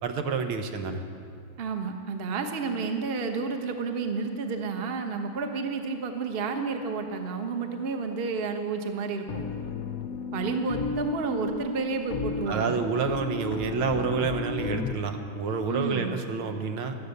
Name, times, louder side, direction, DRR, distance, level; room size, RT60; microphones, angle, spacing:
voice 1, 0.0-1.0 12.5-17.0, right 5 dB, 75° right, 6 dB, 1.9 m, -29 dB
voice 2, 1.6-9.5 10.3-12.8 15.7-16.1, right 4 dB, 35° right, 5 dB, 1.0 m, -31 dB
sound 1, 9.3-14.9, left 4 dB, 70° left, 0.8 m, -33 dB
17.0 x 12.0 x 6.7 m, 2.3 s
omnidirectional pair, 2.3 m